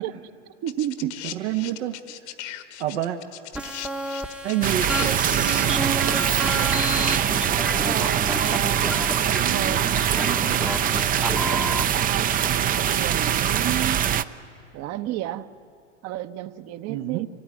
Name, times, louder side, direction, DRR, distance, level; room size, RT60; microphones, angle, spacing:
voice 1, 0.6-1.6 7.8-10.6 11.5-14.0 14.7-15.5 16.0-17.3, right 12 dB, 45° right, 12 dB, 1.0 m, -32 dB
sound 1, 0.7-5.9 6.9-7.0, left 13 dB, 65° left, 1.5 m, -38 dB
voice 2, 1.3-2.0 2.3-2.4 2.8-3.2 4.4-6.2 6.5-6.8 9.3-10.7 16.9-17.3, right 12 dB, 75° right, 6 dB, 1.2 m, -30 dB
sound 2, 3.5-11.8, equal, 5° right, 0.9 m, -30 dB
sound 3, 4.6-14.2, right 10 dB, 25° right, 0.6 m, -23 dB
24.5 x 17.5 x 9.7 m, 2.8 s
hypercardioid pair, 110°, 36 cm